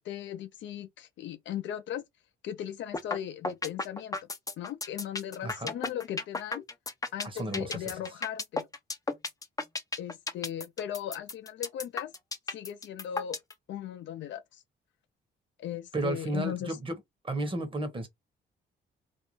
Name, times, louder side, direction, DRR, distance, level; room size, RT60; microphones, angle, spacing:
voice 1, 0.0-2.0 2.4-4.2 4.6-6.6 7.1-8.7 10.0-12.1 12.5-13.4 13.7-14.6 15.6-16.8, left 10 dB, 70° left, 0.5 m, -37 dB
sound 1, 2.9-3.2 3.4-13.5, left 3 dB, 15° left, 0.5 m, -33 dB
voice 2, 5.4-5.7 7.3-7.6 15.9-16.9 17.2-18.1, right 2 dB, 25° right, 1.0 m, -32 dB
2.5 x 2.2 x 3.0 m
cardioid pair, 90°, 20 cm